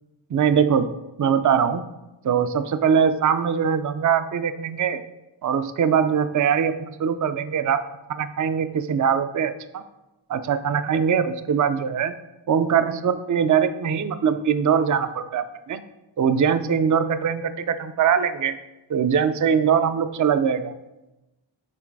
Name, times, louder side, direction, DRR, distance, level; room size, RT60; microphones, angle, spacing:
voice 1, 0.3-0.9 1.2-1.8 2.2-5.0 5.4-7.8 8.1-9.8 10.3-12.1 12.5-15.8 16.2-18.6 18.9-20.7, right 7 dB, 40° right, 11 dB, 0.4 m, -22 dB
6.1 x 3.9 x 4.6 m, 0.98 s
wide cardioid pair, 75°, 47 cm